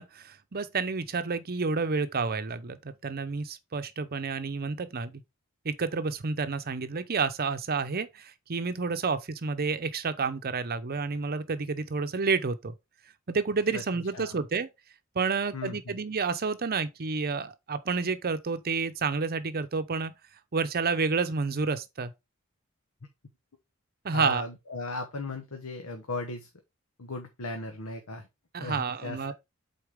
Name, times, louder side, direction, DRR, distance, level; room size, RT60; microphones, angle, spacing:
voice 1, 0.0-5.2 5.6-12.7 13.3-14.7 15.1-20.1 20.5-22.1 24.0-24.4 28.5-29.3, right 4 dB, 45° right, 0.7 m, -30 dB
voice 2, 15.5-16.0 24.1-26.5 27.0-28.3 28.6-29.3, left 2 dB, 85° left, 1.1 m, -37 dB
8.0 x 4.2 x 3.6 m
head